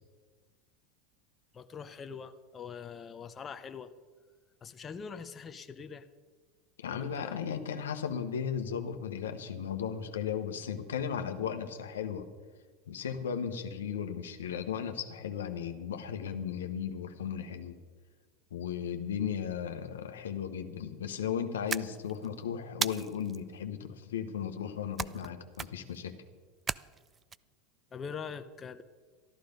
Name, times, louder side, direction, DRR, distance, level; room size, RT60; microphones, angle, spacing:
voice 1, 1.5-3.9 4.6-6.1 6.9-7.6 27.9-28.8, left 6 dB, 30° left, 9 dB, 0.7 m, -43 dB
voice 2, 6.8-12.3 12.9-17.8 18.5-26.1, left 8 dB, 90° left, 7 dB, 1.0 m, -36 dB
sound 1, 21.7-22.3 22.8-23.4 25.0-25.3 25.5-26.0 26.7-27.4, right 6 dB, 25° right, 0.3 m, -35 dB
13.0 x 11.5 x 5.2 m, 1.5 s
hypercardioid pair, 100°, 0 cm